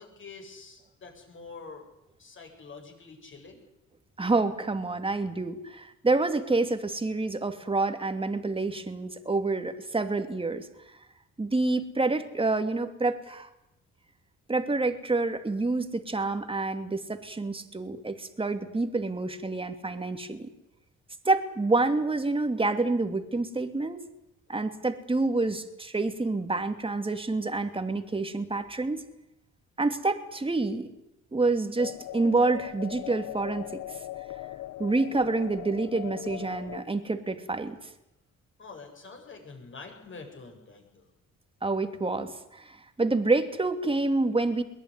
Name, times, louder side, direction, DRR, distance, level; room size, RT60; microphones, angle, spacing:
voice 1, 0.0-1.9 2.2-3.6 38.6-41.1, left 4 dB, 40° left, 3 dB, 8.0 m, -46 dB
voice 2, 4.2-10.7 11.4-13.5 14.5-20.5 21.2-24.0 24.5-29.0 29.8-30.9 31.3-34.0 34.8-37.8 41.6-44.6, right 3 dB, 20° right, 7 dB, 2.7 m, -28 dB
sound 1, 31.8-36.8, left 15 dB, 85° left, 0.8 m, -39 dB
22.5 x 18.5 x 9.8 m, 0.87 s
cardioid pair, 90°, 30 cm